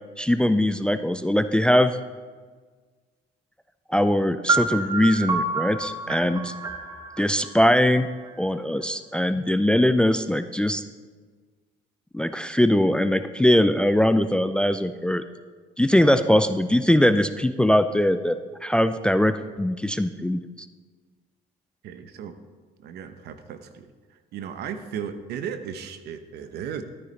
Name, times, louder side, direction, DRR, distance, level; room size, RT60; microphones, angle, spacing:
voice 1, 0.2-2.0 3.9-6.5 7.2-8.1 8.4-10.8 12.1-15.2 15.8-20.4, left 1 dB, 5° left, 11 dB, 0.3 m, -21 dB
sound 1, 4.5-8.3, right 3 dB, 20° right, 0.8 m, -28 dB
voice 2, 21.8-22.4 22.8-23.9 24.3-26.8, right 8 dB, 75° right, 9 dB, 0.9 m, -35 dB
13.0 x 9.3 x 3.3 m, 1.5 s
cardioid pair, 110°, 17 cm